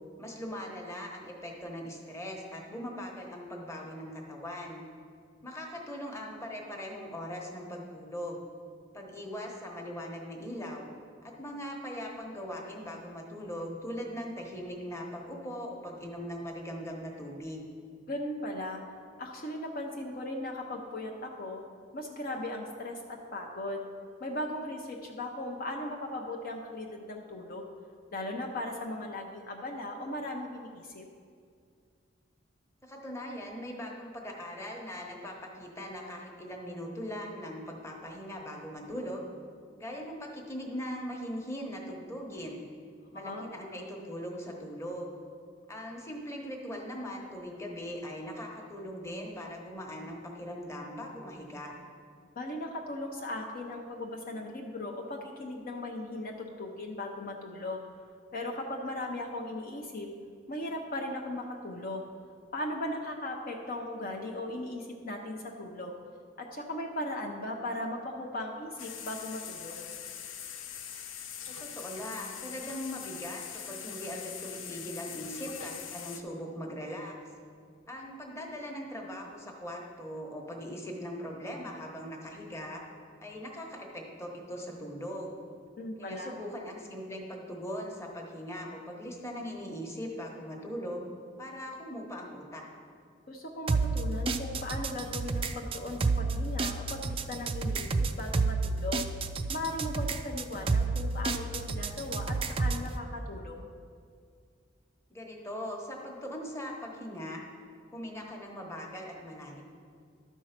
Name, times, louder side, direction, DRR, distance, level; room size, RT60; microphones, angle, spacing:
voice 1, 0.2-4.8 5.4-8.4 8.9-10.9 11.2-17.7 32.8-39.3 39.8-42.6 43.1-45.1 45.7-51.7 71.5-77.2 77.9-82.8 83.2-85.4 86.0-91.1 91.4-92.7 105.1-107.4 107.9-109.6, equal, 15° left, 0 dB, 1.1 m, -40 dB
voice 2, 18.1-18.8 19.2-21.6 21.9-23.8 24.2-27.7 28.1-31.1 43.1-43.5 52.4-57.9 58.3-60.1 60.5-62.1 62.5-65.9 66.4-69.8 85.8-86.3 93.3-99.0 99.5-103.7, left 1 dB, 50° left, 1 dB, 0.7 m, -38 dB
sound 1, 68.8-76.2, left 8 dB, 85° left, 0.6 m, -42 dB
sound 2, 93.7-102.9, right 3 dB, 30° right, 0.3 m, -30 dB
12.0 x 4.6 x 5.8 m, 2.2 s
head